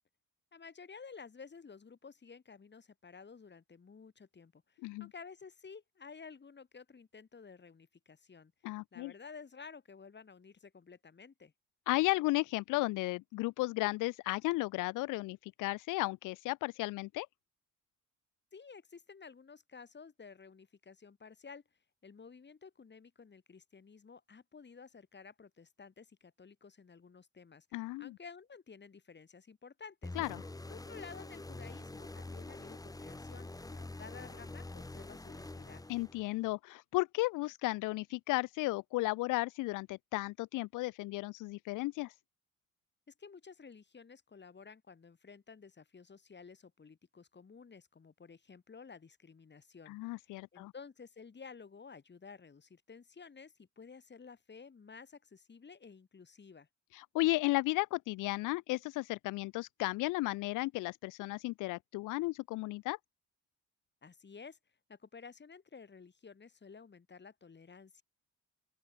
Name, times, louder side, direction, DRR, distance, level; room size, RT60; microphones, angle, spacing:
voice 1, 0.5-8.5 8.9-11.5 18.5-21.6 22.0-30.2 30.7-35.9 43.1-56.7 64.0-64.6 64.9-68.0, left 5 dB, 35° left, 7.7 m, -53 dB
voice 2, 8.6-9.1 11.9-17.3 27.7-28.1 30.2-30.4 35.9-42.1 49.9-50.7 56.9-63.0, left 20 dB, 90° left, 0.5 m, -34 dB
sound 1, 30.0-36.5, left 2 dB, 10° left, 1.5 m, -46 dB
open air
cardioid pair, 90°, 30 cm